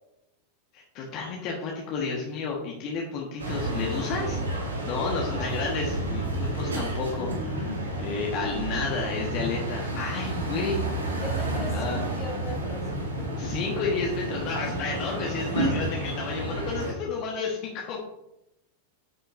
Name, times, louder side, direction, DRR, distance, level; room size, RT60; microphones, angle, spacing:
voice 1, 0.7-4.4 4.8-10.8 11.7-12.0 13.3-18.0, left 4 dB, 40° left, -2 dB, 1.4 m, -31 dB
sound 1, 3.4-16.9, right 1 dB, 70° right, 1.8 m, -30 dB
voice 2, 11.2-13.4, left 3 dB, 25° left, 1 dB, 1.8 m, -40 dB
9.3 x 6.6 x 2.6 m, 0.89 s
figure-of-eight pair, 90°, 0 cm